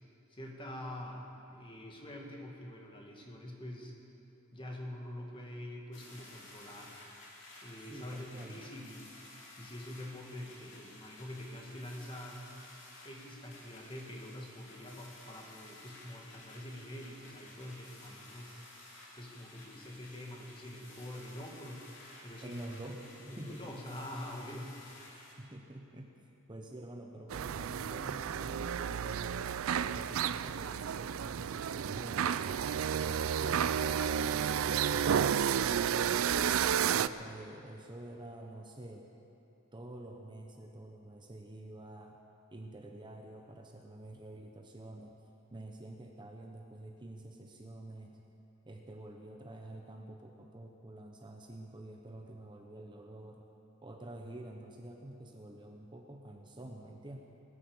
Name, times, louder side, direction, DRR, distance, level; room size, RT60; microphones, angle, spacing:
voice 1, 0.3-3.9 4.5-6.9 7.6-9.1 9.6-12.4 13.0-18.5 19.1-22.6 22.9-24.8 36.7-37.2, left 1 dB, 25° left, 0 dB, 2.0 m, -45 dB
sound 1, 5.9-25.3, left 2 dB, 60° left, 3.2 m, -54 dB
voice 2, 7.8-8.6 22.4-23.0 23.2-23.8 24.5-24.7 25.1-26.2 26.5-29.4 29.8-33.8 36.8-39.1 39.7-42.2 42.5-45.2 45.5-48.3 48.6-53.5 53.8-57.2, right 1 dB, 20° right, 2 dB, 0.8 m, -48 dB
sound 2, 27.3-37.1, right 8 dB, 70° right, 0.4 m, -31 dB
20.0 x 9.9 x 7.2 m, 2.8 s
head